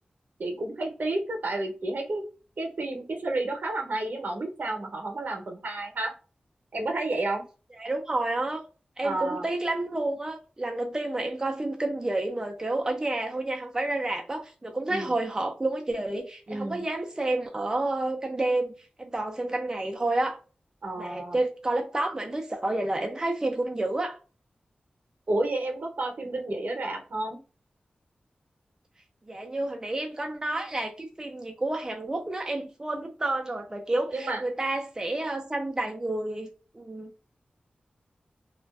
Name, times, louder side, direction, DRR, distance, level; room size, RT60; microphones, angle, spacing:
voice 1, 0.4-2.2 2.6-6.1 6.7-7.4 9.0-9.5 14.9-15.1 16.5-16.8 20.8-21.4 25.3-27.4 34.1-34.4, right 2 dB, 65° right, 0.7 m, -31 dB
voice 2, 7.8-8.6 9.0-18.7 19.0-20.4 21.0-24.2 29.3-36.5 36.7-37.2, right 2 dB, 20° right, 0.4 m, -30 dB
2.4 x 2.2 x 2.3 m
wide cardioid pair, 90°, 3 cm